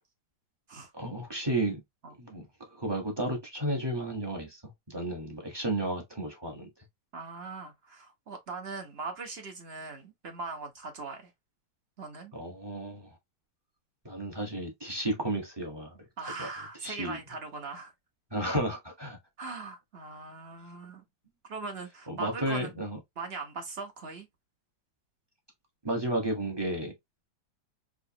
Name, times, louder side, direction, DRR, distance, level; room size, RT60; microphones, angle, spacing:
voice 1, 0.9-1.8 2.2-4.6 4.9-6.7 12.3-13.2 14.0-16.0 16.4-16.5 16.8-17.2 18.3-19.2 22.1-23.0 25.8-26.9, right 1 dB, 20° right, 0.8 m, -33 dB
voice 2, 7.1-11.3 12.0-12.3 16.2-17.9 19.4-21.0 21.4-22.7 23.2-24.3, right 4 dB, 55° right, 0.7 m, -40 dB
4.9 x 2.4 x 2.7 m
omnidirectional pair, 2.1 m